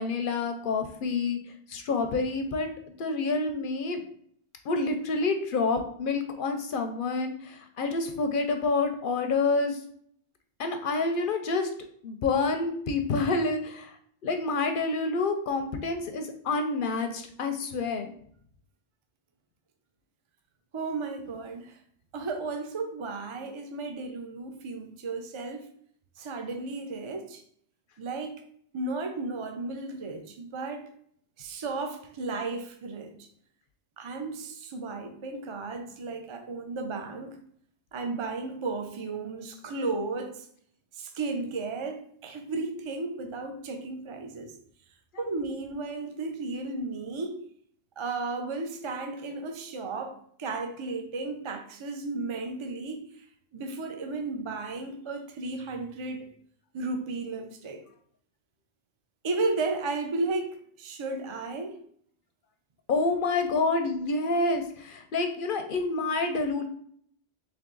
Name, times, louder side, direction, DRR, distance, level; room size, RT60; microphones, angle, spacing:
voice 1, 0.0-1.4 1.7-2.7 3.0-4.0 4.7-9.8 10.6-11.7 12.0-14.0 14.2-18.1 62.9-66.6, left 3 dB, 60° left, 6 dB, 0.6 m, -28 dB
voice 2, 20.7-21.8 22.1-25.7 26.2-27.4 28.0-28.4 28.7-30.9 31.4-33.3 34.0-37.4 37.9-40.5 40.9-44.6 45.2-47.4 48.0-53.3 53.5-56.3 56.7-57.8 59.2-61.8, right 3 dB, 45° right, 5 dB, 0.4 m, -34 dB
3.5 x 3.1 x 3.8 m, 0.62 s
omnidirectional pair, 1.1 m